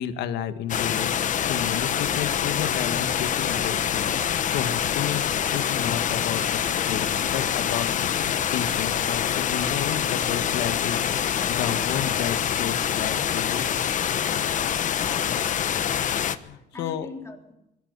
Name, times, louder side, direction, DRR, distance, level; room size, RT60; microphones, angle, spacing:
voice 1, 0.0-6.6 6.9-13.7 16.4-17.1, left 9 dB, 80° left, 9 dB, 1.8 m, -32 dB
sound 1, 0.7-16.4, left 9 dB, 50° left, 1.1 m, -25 dB
sound 2, 1.5-12.1, right 4 dB, 30° right, 3.9 m, -51 dB
voice 2, 14.9-16.0 16.6-17.5, left 3 dB, 15° left, 2 dB, 3.7 m, -43 dB
20.5 x 13.5 x 9.7 m, 0.89 s
cardioid pair, 110°, 17 cm